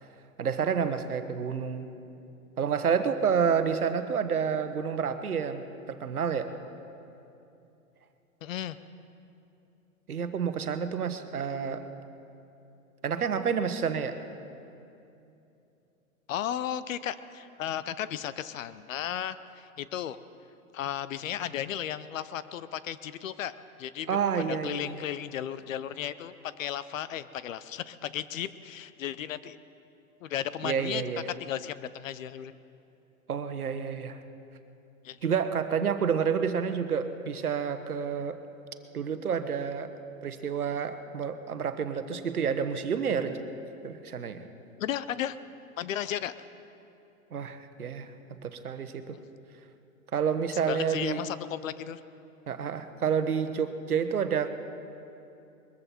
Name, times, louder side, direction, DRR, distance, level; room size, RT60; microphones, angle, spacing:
voice 1, 0.4-1.9 2.6-6.6 10.1-11.9 13.0-14.2 24.1-25.0 30.6-31.3 33.3-34.2 35.2-38.4 38.9-39.9 40.2-43.4 43.8-44.5 47.3-49.2 50.1-51.2 52.5-54.5, right 7 dB, 85° right, 9 dB, 1.2 m, -29 dB
voice 2, 8.4-8.8 16.3-20.2 20.7-23.5 23.8-24.1 24.5-29.6 30.2-31.0 31.4-32.5 35.0-35.2 44.8-45.4 45.8-46.3 49.1-49.2 50.7-52.0, left 10 dB, 65° left, 15 dB, 0.7 m, -34 dB
21.5 x 14.5 x 4.4 m, 2.8 s
hypercardioid pair, 120°, 43 cm